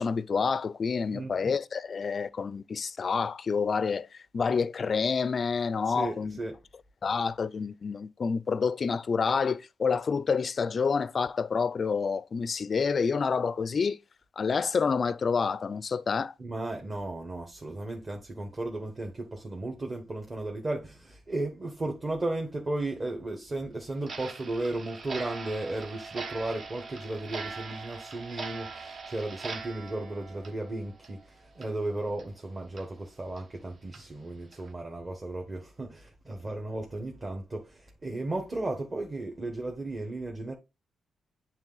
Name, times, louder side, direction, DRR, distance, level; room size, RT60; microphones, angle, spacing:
voice 1, 0.0-4.1 4.3-6.3 7.0-14.0 14.4-16.3, left 5 dB, 45° left, 0.4 m, -28 dB
voice 2, 5.8-6.6 16.4-40.5, right 2 dB, 25° right, 1.3 m, -35 dB
Clock, 24.0-31.3 31.6-31.7 32.2-32.3 32.8-32.9 33.4-33.5 33.9-34.0 34.5-34.7, right 4 dB, 50° right, 1.0 m, -41 dB
9.0 x 3.3 x 3.9 m
cardioid pair, 110°, 0 cm